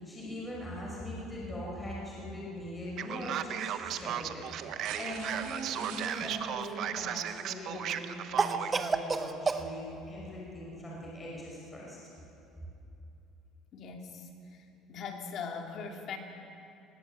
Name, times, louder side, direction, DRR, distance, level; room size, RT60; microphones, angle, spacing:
voice 1, 0.0-12.0, equal, 15° left, -4 dB, 5.6 m, -41 dB
sound 1, 2.6-2.7 3.7-6.2 7.7-7.8, right 7 dB, 85° right, 3.0 m, -47 dB
Male speech man speaking, 3.0-8.8, right 10 dB, 55° right, 1.0 m, -35 dB
Cough, 6.1-6.9 8.4-9.7, right 4 dB, 20° right, 1.1 m, -31 dB
voice 2, 13.7-14.6 14.9-16.2, left 5 dB, 50° left, 3 dB, 2.6 m, -40 dB
19.0 x 18.5 x 8.4 m, 2.7 s
cardioid pair, 130°, 0 cm